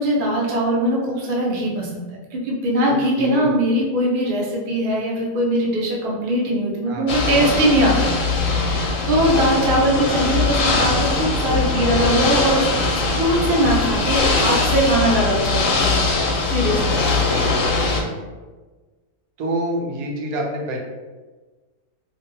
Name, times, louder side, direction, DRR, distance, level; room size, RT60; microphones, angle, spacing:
voice 1, 0.0-8.1 8.4-16.1 16.5-17.0, right 1 dB, 50° right, -3 dB, 0.7 m, -21 dB
voice 2, 2.9-3.6 6.9-7.1 17.0-18.2 19.4-20.8, right 1 dB, 85° right, 0 dB, 1.1 m, -28 dB
Ocean / Boat Water vehicle, 7.1-18.0, left 3 dB, 70° left, 0.9 m, -21 dB
2.8 x 2.5 x 2.7 m, 1.3 s
omnidirectional pair, 1.5 m